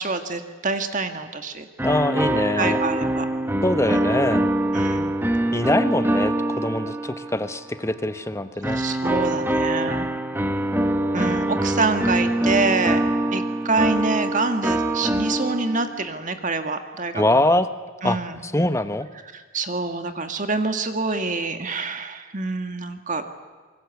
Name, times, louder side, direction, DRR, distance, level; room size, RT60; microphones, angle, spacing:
voice 1, 0.0-1.7 2.6-3.3 3.9-4.0 4.7-5.2 8.7-10.1 11.1-17.4 18.0-18.4 19.3-23.2, right 3 dB, 35° right, 7 dB, 1.8 m, -26 dB
voice 2, 1.8-2.8 3.6-4.5 5.5-8.8 17.1-17.7 18.0-18.2 18.4-19.1, left 1 dB, 15° left, 11 dB, 1.1 m, -23 dB
sound 1, 1.8-7.6 8.6-16.0, right 1 dB, 10° right, 1.4 m, -24 dB
26.5 x 23.5 x 8.3 m, 1.4 s
head